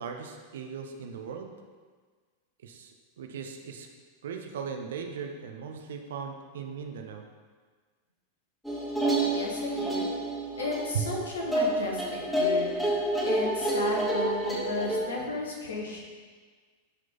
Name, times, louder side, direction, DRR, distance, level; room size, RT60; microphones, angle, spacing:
voice 1, 0.0-1.5 2.6-3.9 4.2-7.2 10.9-11.1, right 6 dB, 60° right, 4 dB, 0.8 m, -37 dB
sound 1, 8.6-15.0, right 1 dB, 5° left, 2.0 m, -29 dB
voice 2, 9.2-10.1 10.5-12.7 13.2-16.0, left 2 dB, 65° left, 0 dB, 1.7 m, -34 dB
11.5 x 4.9 x 4.0 m, 1.5 s
figure-of-eight pair, 90°, 0 cm